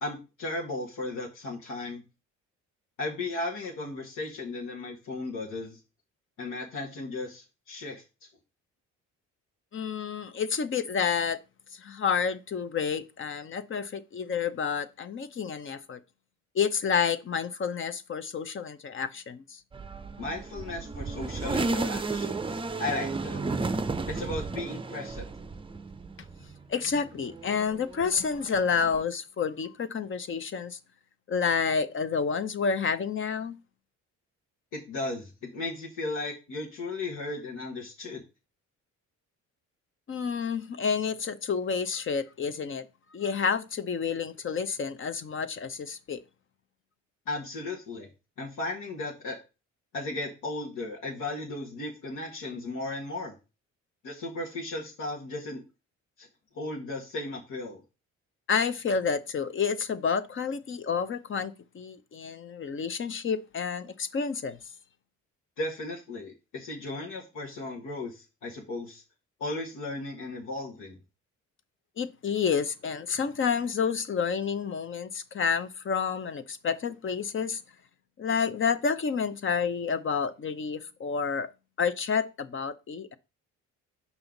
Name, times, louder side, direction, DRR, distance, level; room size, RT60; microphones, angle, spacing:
voice 1, 0.0-2.0 3.0-5.8 6.4-8.0 20.2-23.4 24.1-25.3 34.7-38.2 47.3-48.1 48.4-49.4 49.9-53.4 54.0-55.6 56.2-56.3 56.5-57.8 65.6-69.0 69.4-71.0, left 2 dB, 85° left, 2.0 m, -35 dB
voice 2, 9.7-11.4 11.7-16.0 16.5-19.6 26.7-30.8 31.3-33.6 40.1-42.9 43.1-46.2 58.5-64.6 72.0-77.6 78.2-81.5 81.8-83.2, left 6 dB, 40° left, 0.8 m, -29 dB
sound 1, 19.7-26.6 27.0-29.0, right 3 dB, 15° right, 0.6 m, -33 dB
7.1 x 5.6 x 3.9 m
cardioid pair, 90°, 30 cm